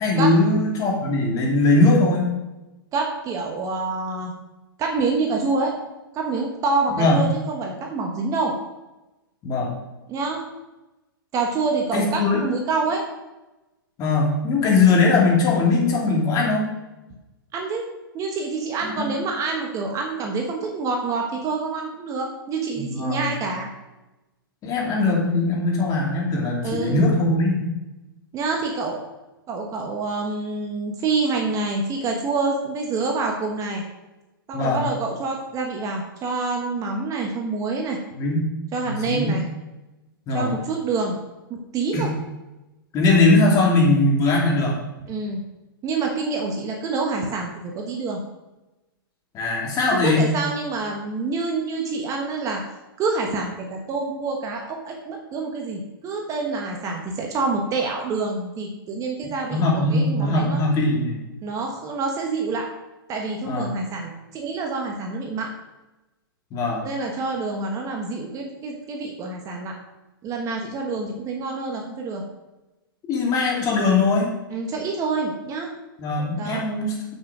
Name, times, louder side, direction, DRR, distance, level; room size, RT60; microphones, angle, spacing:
voice 1, 0.0-2.3 7.0-7.2 9.4-9.7 11.9-12.4 14.0-16.6 18.8-19.1 22.9-23.3 24.6-27.6 34.5-34.8 38.2-38.5 38.9-39.3 40.3-40.5 41.9-42.1 42.9-44.8 49.3-50.3 59.5-61.2 63.5-63.7 66.5-66.8 73.1-74.3 76.0-76.9, left 3 dB, 30° left, -2 dB, 2.6 m, -20 dB
voice 2, 2.9-4.3 4.8-5.7 6.1-8.5 10.1-10.4 11.3-13.0 17.5-17.8 18.1-23.7 26.6-27.1 28.3-29.0 29.5-33.8 34.5-38.0 38.7-39.4 40.3-41.2 41.5-42.1 45.0-45.4 45.8-48.2 49.9-52.6 53.0-60.6 61.4-62.7 63.1-65.5 66.8-69.8 70.2-72.2 74.5-75.7 76.4-76.6, right 3 dB, 25° right, 1 dB, 1.2 m, -27 dB
7.3 x 6.4 x 5.0 m, 1.0 s
hypercardioid pair, 125°, 12 cm